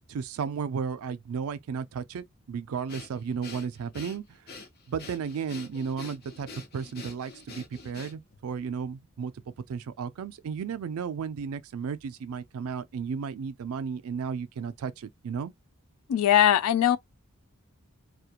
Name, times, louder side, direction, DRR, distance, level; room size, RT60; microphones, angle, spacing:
voice 1, 0.1-4.4 4.9-6.5 6.7-15.5, right 6 dB, 70° right, 0.4 m, -34 dB
Breathing, 2.9-8.4, left 4 dB, 45° left, 0.7 m, -46 dB
voice 2, 16.1-17.0, left 10 dB, 75° left, 0.3 m, -20 dB
2.4 x 2.1 x 2.8 m
head